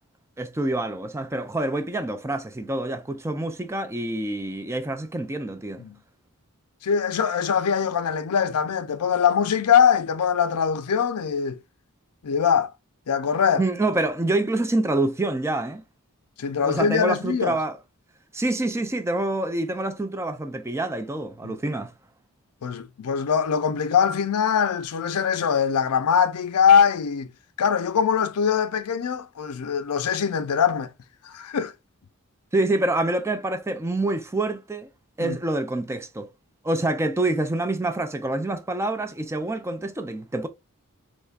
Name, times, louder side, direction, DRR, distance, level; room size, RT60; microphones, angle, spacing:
voice 1, 0.4-5.8 13.6-15.8 16.6-17.8 18.3-21.9 32.5-34.9 35.2-36.3 36.6-40.5, right 2 dB, 10° right, 0.3 m, -26 dB
voice 2, 6.8-11.6 12.2-12.7 13.1-13.6 16.4-17.6 21.4-21.6 22.6-27.3 27.6-30.9 31.2-31.7 35.2-35.4, left 7 dB, 85° left, 0.5 m, -22 dB
3.5 x 3.1 x 2.4 m
head